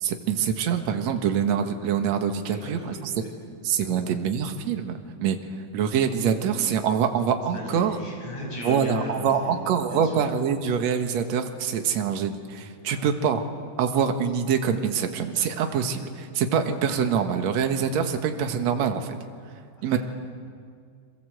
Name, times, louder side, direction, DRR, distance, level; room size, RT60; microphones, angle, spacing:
voice 1, 0.0-3.1 3.6-5.4 5.7-8.0 8.6-13.4 13.8-19.2 19.8-20.0, right 7 dB, 55° right, 6 dB, 2.4 m, -25 dB
voice 2, 2.5-3.3 3.8-4.0 7.5-10.3 12.9-13.0 19.8-20.0, left 1 dB, 50° left, -1 dB, 7.4 m, -37 dB
29.5 x 23.0 x 7.9 m, 2.1 s
omnidirectional pair, 4.2 m